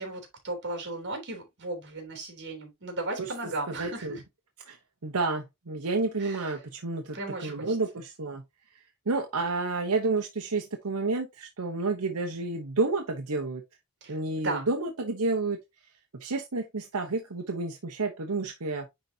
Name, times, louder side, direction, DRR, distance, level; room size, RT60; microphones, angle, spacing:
voice 1, 0.0-4.2 6.2-6.5 7.1-7.7 14.0-14.7, right 2 dB, 55° right, 3.2 m, -36 dB
voice 2, 3.7-4.2 4.7-4.8 5.0-8.4 8.7-13.6 14.1-15.6 16.1-18.9, right 3 dB, 90° right, 1.0 m, -30 dB
9.7 x 4.1 x 2.8 m
head